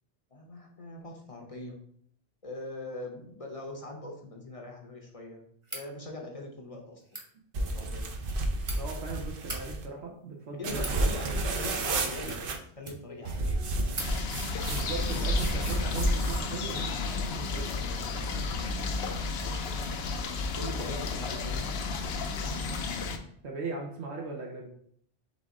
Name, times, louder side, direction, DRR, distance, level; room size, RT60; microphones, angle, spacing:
voice 1, 0.3-1.8 2.4-5.4 5.7-7.0 7.6-8.1 10.6-12.4 12.8-13.6 17.7-19.8 20.5-22.0, left 2 dB, 40° left, 1 dB, 0.6 m, -42 dB
sound 1, 5.6-5.9 7.0-7.3 8.2-8.8 9.3-9.6 10.4-11.0 11.6-11.9 12.2-13.2 13.5-13.6 13.9-14.1, right 2 dB, 30° right, 0.9 m, -40 dB
sound 2, 7.5-9.9 10.6-12.6 13.3-16.5, right 1 dB, 60° right, 0.8 m, -31 dB
voice 2, 8.7-11.4 14.7-17.7 23.4-24.7, right 3 dB, 85° right, 0 dB, 1.1 m, -38 dB
sound 3, 14.0-23.2, left 4 dB, 70° left, 0.8 m, -33 dB
4.1 x 3.6 x 3.6 m, 0.64 s
omnidirectional pair, 1.1 m